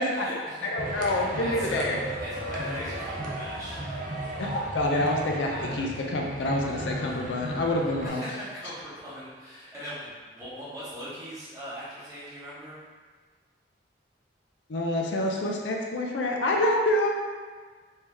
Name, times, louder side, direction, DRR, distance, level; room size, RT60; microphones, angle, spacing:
voice 1, 0.0-0.7 1.0-1.8 2.2-4.1 5.5-5.9 8.0-12.8, equal, 20° right, -11 dB, 1.1 m, -40 dB
voice 2, 0.6-2.0 4.4-8.2 14.7-17.1, left 1 dB, 75° left, 0 dB, 0.4 m, -27 dB
sound 1, 0.8-8.1, right 1 dB, 45° right, 0.5 m, -35 dB
3.3 x 2.7 x 3.4 m, 1.5 s
head